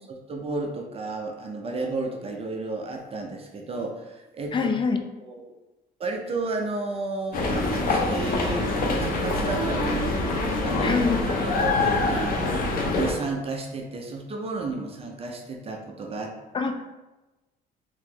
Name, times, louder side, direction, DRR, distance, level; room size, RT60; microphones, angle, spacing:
voice 1, 0.1-4.7 5.3-5.6 6.0-8.7 9.0-12.4 12.9-16.4, right 3 dB, 35° right, 1 dB, 0.5 m, -33 dB
voice 2, 4.5-5.0 10.8-11.3 16.5-16.9, left 5 dB, 30° left, 6 dB, 0.4 m, -25 dB
sound 1, 7.3-13.1, left 2 dB, 60° left, 0.7 m, -25 dB
3.1 x 2.9 x 3.7 m, 1.1 s
cardioid pair, 110°, 17 cm